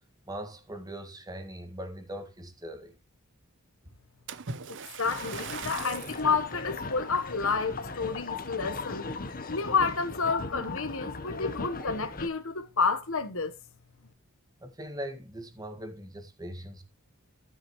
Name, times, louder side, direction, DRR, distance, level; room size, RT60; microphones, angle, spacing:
voice 1, 0.3-3.0 14.6-16.8, right 1 dB, 20° right, 1.8 m, -40 dB
Splash splatter, 4.3-6.3 7.0-7.2 7.8-7.9, right 6 dB, 60° right, 0.8 m, -40 dB
voice 2, 4.7-9.1 9.5-13.5, left 5 dB, 65° left, 1.2 m, -30 dB
sound 1, 5.0-12.3, left 3 dB, 40° left, 1.1 m, -38 dB
13.0 x 7.8 x 3.1 m
head